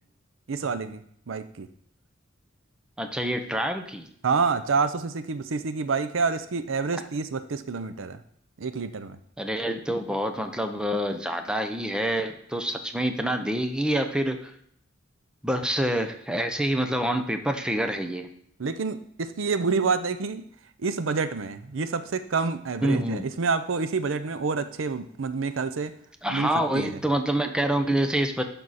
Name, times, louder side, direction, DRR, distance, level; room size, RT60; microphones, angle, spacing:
voice 1, 0.5-1.7 4.2-8.2 8.6-9.2 18.6-20.4 20.8-25.9 26.3-27.0, right 4 dB, 80° right, 11 dB, 0.6 m, -28 dB
voice 2, 3.0-4.1 9.4-14.5 15.4-18.3 22.8-23.3 26.2-28.4, right 1 dB, 5° right, 6 dB, 0.7 m, -27 dB
11.0 x 6.1 x 4.1 m, 0.66 s
head